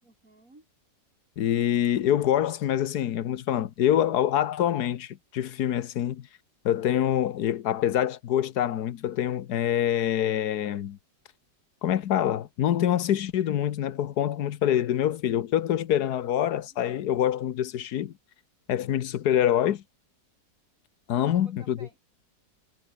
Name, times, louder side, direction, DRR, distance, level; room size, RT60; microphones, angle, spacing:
voice 1, 0.0-0.7 16.1-16.7 21.2-22.0, right 2 dB, 45° right, 5.9 m, -53 dB
voice 2, 1.4-6.3 6.6-11.0 11.8-18.1 18.7-19.8 21.1-21.8, left 11 dB, 65° left, 1.4 m, -25 dB
omnidirectional pair, 1.9 m